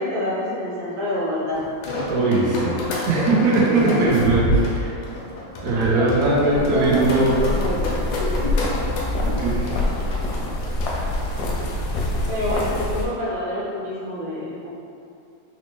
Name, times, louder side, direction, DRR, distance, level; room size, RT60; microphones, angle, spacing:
voice 1, 0.0-1.6 5.8-7.9 8.2-8.5 12.3-14.7, left 1 dB, 55° right, -7 dB, 1.0 m, -27 dB
sound 1, 1.6-11.6, left 1 dB, 90° left, 1.4 m, -29 dB
voice 2, 2.1-2.8 3.1-5.0 5.6-7.4 9.2-9.8 10.9-11.0, right 2 dB, 85° right, -6 dB, 0.7 m, -20 dB
sound 2, 6.5-13.1, left 1 dB, 75° left, 1.0 m, -25 dB
4.1 x 2.0 x 2.9 m, 2.5 s
omnidirectional pair, 2.1 m